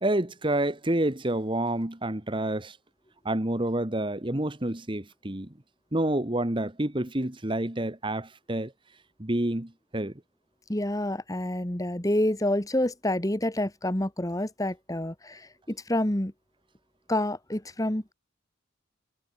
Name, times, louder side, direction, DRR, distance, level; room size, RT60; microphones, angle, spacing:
voice 1, 0.0-2.8 3.2-5.5 5.9-8.7 9.2-10.1, right 1 dB, 25° right, 1.4 m, -28 dB
voice 2, 10.7-16.3 17.1-18.1, left 1 dB, 15° left, 1.4 m, -28 dB
head